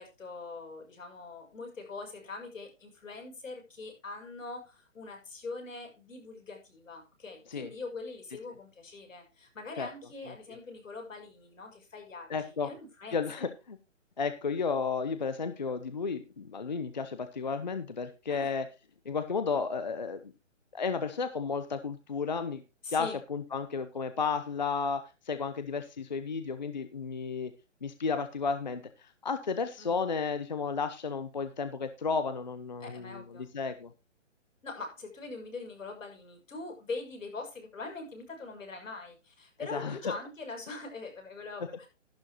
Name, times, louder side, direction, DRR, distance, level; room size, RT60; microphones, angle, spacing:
voice 1, 0.0-13.5 18.3-18.5 22.8-23.2 29.8-30.0 32.8-33.5 34.6-41.9, left 3 dB, 85° left, 3 dB, 6.6 m, -43 dB
voice 2, 12.3-12.7 13.1-13.8 14.2-18.7 19.0-20.3 20.7-22.6 22.9-27.5 27.8-33.9 39.7-40.1, left 5 dB, 35° left, 11 dB, 0.7 m, -33 dB
12.5 x 11.5 x 2.9 m, 0.27 s
hypercardioid pair, 180°, 38 cm